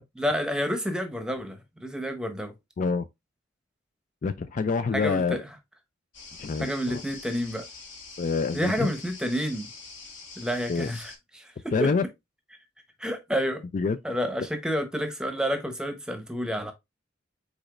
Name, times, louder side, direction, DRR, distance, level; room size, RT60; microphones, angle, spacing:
voice 1, 0.2-2.5 4.9-5.5 6.6-7.7 8.5-9.7 10.4-11.9 13.0-13.6 14.0-16.7, equal, 5° right, 0.9 m, -29 dB
voice 2, 4.2-5.4 6.4-7.0 8.2-8.9 10.7-10.9 11.7-12.0 13.7-14.0, left 4 dB, 40° left, 0.3 m, -26 dB
sound 1, 6.1-11.2, left 4 dB, 85° left, 1.7 m, -45 dB
4.9 x 4.2 x 2.4 m
head